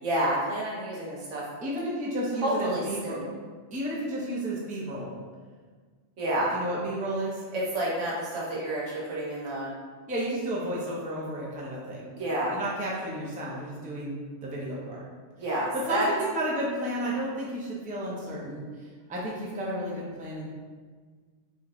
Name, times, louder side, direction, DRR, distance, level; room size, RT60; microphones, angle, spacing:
voice 1, 0.0-1.4 2.4-3.2 6.2-6.5 7.5-9.7 12.1-12.6 15.4-16.1, right 1 dB, 85° right, -5 dB, 1.2 m, -29 dB
voice 2, 1.6-3.2 3.7-5.1 6.5-7.4 10.1-12.1 12.5-15.0 15.7-18.6 19.1-20.5, right 1 dB, 10° right, -5 dB, 0.4 m, -32 dB
3.5 x 2.9 x 2.4 m, 1.5 s
omnidirectional pair, 1.2 m